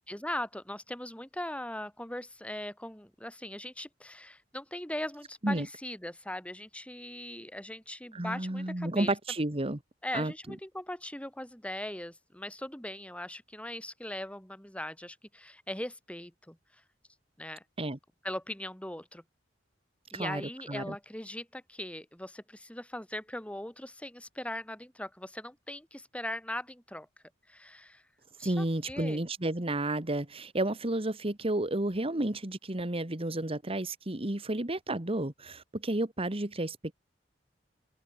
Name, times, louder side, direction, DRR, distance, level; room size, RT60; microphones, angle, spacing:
voice 1, 0.1-9.1 10.0-16.6 17.4-17.6 18.2-19.2 20.1-27.1 27.5-28.0 28.4-29.2, left 1 dB, 5° left, 3.3 m, -40 dB
voice 2, 8.1-9.8 10.1-10.3 17.8-18.0 20.1-20.9 28.4-37.0, right 1 dB, 30° right, 1.7 m, -31 dB
open air
head